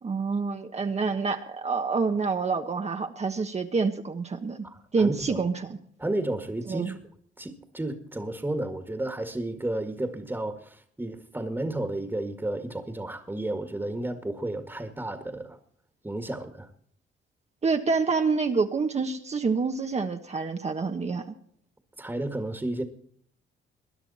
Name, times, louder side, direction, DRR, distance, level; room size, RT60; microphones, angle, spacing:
voice 1, 0.0-4.7 4.9-5.8 6.7-6.9 17.6-21.2, right 4 dB, 35° right, 1.2 m, -27 dB
voice 2, 4.6-5.4 6.0-7.0 7.4-15.6 16.0-16.7 22.0-22.8, right 1 dB, 10° right, 1.9 m, -32 dB
21.0 x 10.5 x 4.2 m
cardioid pair, 90°, 20 cm